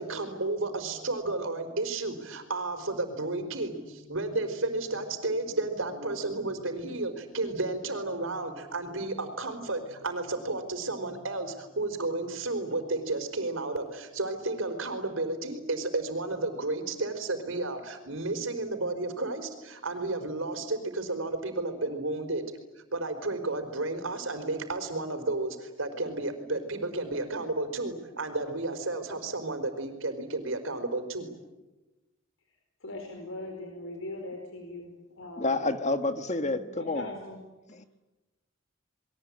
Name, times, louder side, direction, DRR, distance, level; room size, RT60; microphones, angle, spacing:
voice 1, 0.0-22.4 22.9-31.3, right 2 dB, 80° right, 7 dB, 4.8 m, -32 dB
voice 2, 32.8-35.7 36.3-37.4, left 2 dB, 80° left, 3 dB, 4.7 m, -40 dB
voice 3, 35.4-37.0 37.8-37.9, left 2 dB, 35° left, 9 dB, 1.7 m, -29 dB
28.5 x 22.5 x 8.9 m, 1.1 s
head